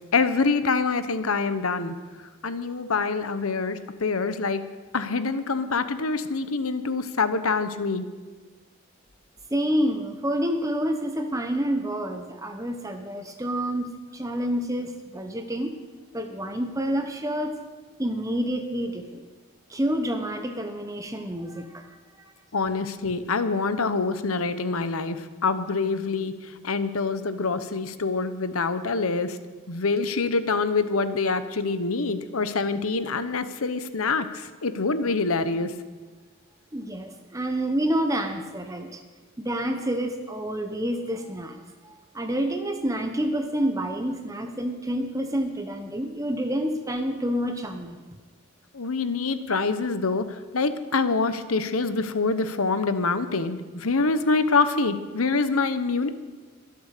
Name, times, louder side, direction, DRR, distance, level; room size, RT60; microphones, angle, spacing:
voice 1, 0.1-1.9 2.4-4.6 4.9-8.1 22.5-26.3 26.6-29.4 29.7-35.7 48.7-50.3 50.5-56.1, left 4 dB, 85° left, 11 dB, 1.0 m, -25 dB
voice 2, 9.5-15.7 16.1-17.5 18.0-19.2 19.7-21.9 22.2-22.3 36.7-39.0 39.4-48.0, equal, 15° right, 6 dB, 0.9 m, -28 dB
23.0 x 7.8 x 6.7 m, 1.3 s
head